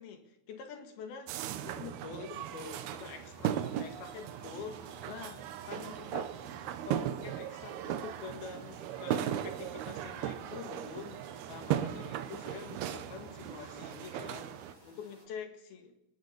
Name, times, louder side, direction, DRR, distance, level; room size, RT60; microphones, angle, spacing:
voice 1, 0.0-1.4 1.7-6.3 6.9-14.5 14.8-16.0, left 6 dB, 75° left, 5 dB, 3.6 m, -46 dB
sound 1, 1.3-14.7, right 11 dB, 80° right, 2.9 m, -37 dB
sound 2, 2.3-15.3, equal, 10° right, 7.0 m, -57 dB
25.5 x 20.5 x 5.3 m, 0.90 s
omnidirectional pair, 4.5 m